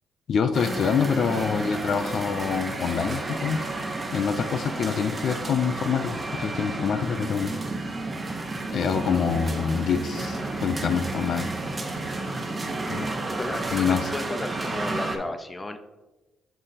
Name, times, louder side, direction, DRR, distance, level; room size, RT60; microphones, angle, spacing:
voice 1, 0.3-3.7 4.1-7.5 8.7-11.5 12.9-13.1 13.7-14.1, left 6 dB, 60° left, 7 dB, 0.4 m, -26 dB
sound 1, 0.5-15.2, right 2 dB, 25° right, 0.9 m, -31 dB
voice 2, 13.4-13.8 14.1-15.8, left 2 dB, 20° left, 8 dB, 0.6 m, -33 dB
6.8 x 3.7 x 4.1 m, 1.1 s
cardioid pair, 90°, 0 cm